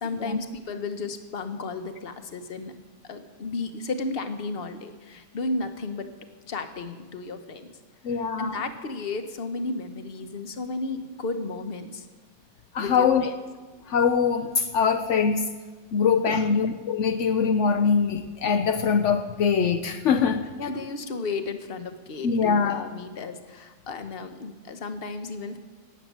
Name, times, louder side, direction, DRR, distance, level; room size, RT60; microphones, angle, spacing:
voice 1, 0.0-2.7 3.1-6.1 6.5-7.7 8.1-12.1 12.8-13.3 16.2-16.6 20.6-25.6, left 3 dB, 40° left, 8 dB, 0.9 m, -33 dB
voice 2, 8.0-8.6 12.7-13.3 13.9-15.5 15.9-20.4 22.2-22.9, left 6 dB, 75° left, 8 dB, 0.6 m, -23 dB
15.5 x 7.4 x 9.4 m, 1.4 s
omnidirectional pair, 2.1 m